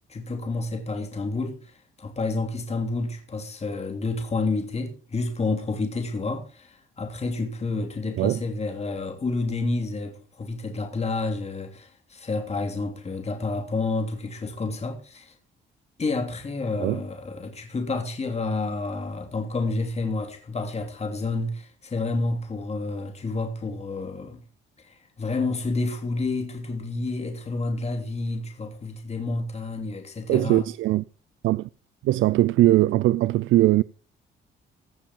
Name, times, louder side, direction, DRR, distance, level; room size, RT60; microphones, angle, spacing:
voice 1, 0.1-15.3 16.0-24.4 24.8-30.6, left 3 dB, 30° left, 3.0 m, -29 dB
voice 2, 30.3-31.0 31.4-31.7 32.0-33.8, right 16 dB, 80° right, 0.4 m, -20 dB
16.5 x 7.1 x 4.5 m
cardioid pair, 90°, 20 cm